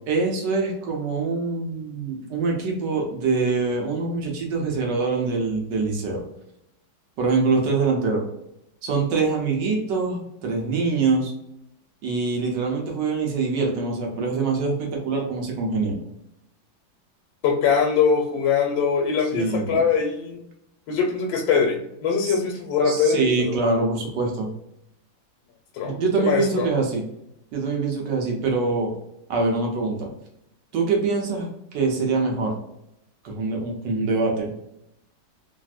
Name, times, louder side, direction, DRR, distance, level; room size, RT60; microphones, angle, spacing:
voice 1, 0.1-6.2 7.2-8.2 8.8-11.3 12.0-16.0 19.3-19.8 22.2-22.4 22.8-24.5 25.8-27.0 27.5-28.9 29.3-30.1 30.7-32.5 33.2-34.5, right 4 dB, 70° right, 1 dB, 1.3 m, -24 dB
voice 2, 17.4-20.4 20.9-23.6 25.7-26.7, left 6 dB, 85° left, 0 dB, 1.4 m, -22 dB
3.4 x 2.6 x 2.3 m, 0.79 s
omnidirectional pair, 2.1 m